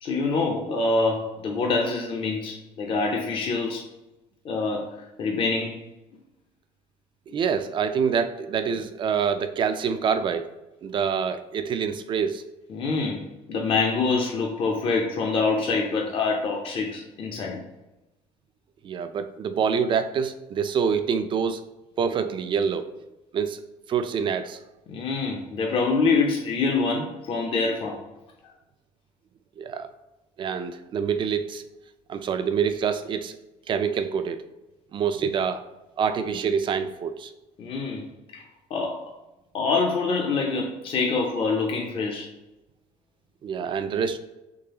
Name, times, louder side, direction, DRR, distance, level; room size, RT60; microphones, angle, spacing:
voice 1, 0.0-3.8 4.4-4.9 5.2-5.8 12.7-13.2 13.5-17.6 24.9-28.0 37.6-38.0 38.3-38.4 38.7-39.1 39.5-42.3, left 4 dB, 45° left, 0 dB, 0.6 m, -25 dB
voice 2, 7.3-10.6 10.8-12.4 18.8-21.6 22.0-22.9 23.3-23.6 23.9-24.6 29.6-29.9 30.4-31.6 32.1-33.4 33.7-34.4 34.9-35.6 36.0-37.3 43.4-44.2, right 6 dB, 40° right, 10 dB, 0.3 m, -26 dB
3.8 x 3.0 x 2.8 m, 0.98 s
supercardioid pair, 95°, 13 cm